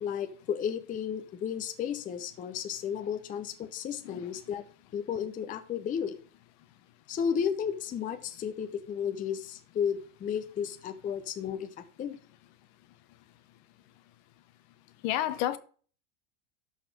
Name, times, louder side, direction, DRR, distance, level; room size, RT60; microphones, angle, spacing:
voice 1, 0.0-4.6 4.9-6.2 7.1-12.2, left 8 dB, 20° left, 0.7 m, -33 dB
voice 2, 15.0-15.6, left 12 dB, 50° left, 1.0 m, -30 dB
12.0 x 4.2 x 5.0 m
supercardioid pair, 130°, 38 cm